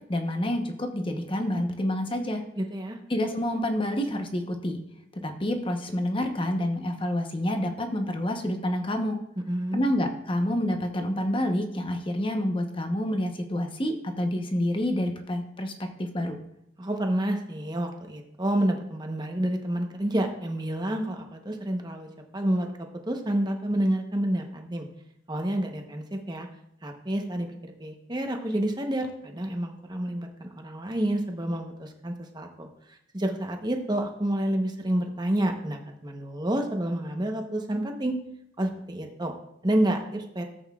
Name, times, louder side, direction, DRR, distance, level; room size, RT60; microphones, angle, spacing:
voice 1, 0.1-2.4 3.1-4.8 5.2-9.2 9.7-16.4, left 1 dB, 25° left, 5 dB, 0.9 m, -28 dB
voice 2, 2.6-3.0 9.5-9.8 16.8-24.9 25.3-26.5 26.8-38.1 38.6-39.3 39.6-40.4, right 1 dB, 20° right, 3 dB, 1.0 m, -29 dB
14.0 x 8.0 x 2.4 m, 0.77 s
head